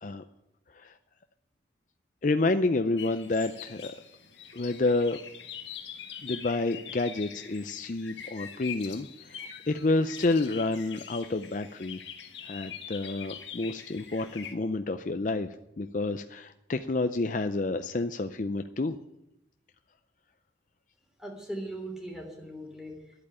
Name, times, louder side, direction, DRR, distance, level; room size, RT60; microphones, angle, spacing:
voice 1, 2.2-4.0 4.5-5.2 6.2-12.0 12.4-15.5 15.8-19.0, left 2 dB, 45° left, 9 dB, 0.5 m, -29 dB
sound 1, 3.0-14.5, left 8 dB, 75° left, 1.6 m, -44 dB
voice 2, 21.2-23.3, right 1 dB, 5° right, 1 dB, 3.0 m, -40 dB
11.0 x 8.5 x 9.8 m, 0.86 s
head